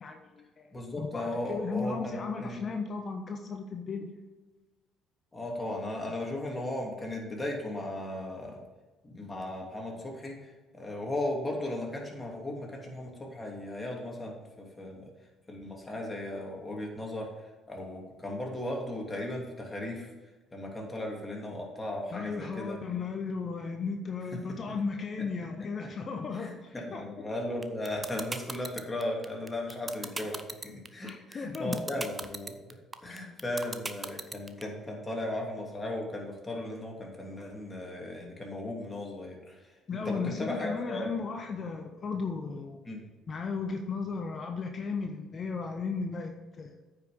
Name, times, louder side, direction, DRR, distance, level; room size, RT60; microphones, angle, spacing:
voice 1, 0.0-0.7 1.0-4.1 22.1-27.1 31.0-31.9 33.1-33.2 39.9-42.8 43.3-46.7, left 4 dB, 45° left, 4 dB, 1.0 m, -35 dB
voice 2, 0.7-2.6 5.3-8.6 9.0-15.1 15.5-17.3 17.7-20.1 20.5-22.8 23.8-23.9 24.3-24.4 24.7-24.8 26.4-32.5 33.0-39.6 39.9-41.1 42.8-43.1, left 1 dB, 20° left, -1 dB, 2.9 m, -36 dB
sound 1, 27.6-34.6, right 3 dB, 25° right, 0.8 m, -36 dB
9.1 x 5.9 x 5.2 m, 1.3 s
hypercardioid pair, 60°, 0 cm